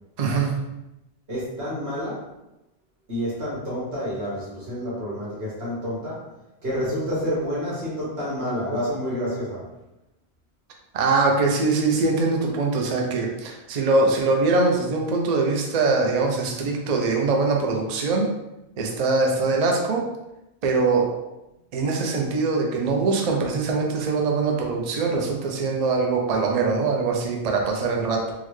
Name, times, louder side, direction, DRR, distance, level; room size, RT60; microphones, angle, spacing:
voice 1, 0.2-0.5 10.9-18.3 18.8-20.1 20.6-21.1 21.7-28.3, right 3 dB, 50° right, 1 dB, 0.5 m, -22 dB
voice 2, 1.3-2.3 3.1-6.3 6.6-9.7, equal, 80° right, -7 dB, 1.6 m, -29 dB
3.8 x 2.1 x 3.1 m, 0.93 s
omnidirectional pair, 1.0 m